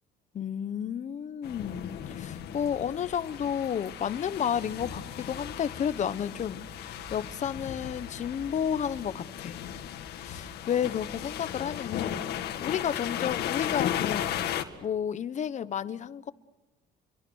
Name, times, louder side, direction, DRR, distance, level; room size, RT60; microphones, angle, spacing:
voice 1, 0.3-9.6 10.2-14.4 14.8-16.3, left 8 dB, 45° left, 1.2 m, -32 dB
sound 1, 1.4-14.6, left 10 dB, 75° left, 2.1 m, -36 dB
29.0 x 24.0 x 6.5 m
cardioid pair, 110°, 17 cm